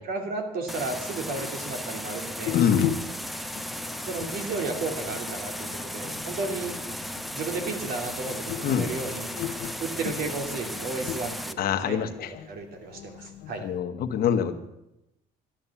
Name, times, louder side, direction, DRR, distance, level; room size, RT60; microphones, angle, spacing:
voice 1, 0.1-2.6 4.0-6.7 7.3-9.3 9.8-13.6, right 3 dB, 65° right, 4 dB, 2.7 m, -33 dB
sound 1, 0.7-11.5, equal, ahead, 0.8 m, -35 dB
sound 2, 2.5-13.8, left 11 dB, 85° left, 1.0 m, -36 dB
voice 2, 2.5-2.9 8.6-8.9 11.6-12.3 13.6-14.5, left 8 dB, 65° left, 8 dB, 1.3 m, -25 dB
13.0 x 10.5 x 7.2 m, 0.90 s
cardioid pair, 110°, 17 cm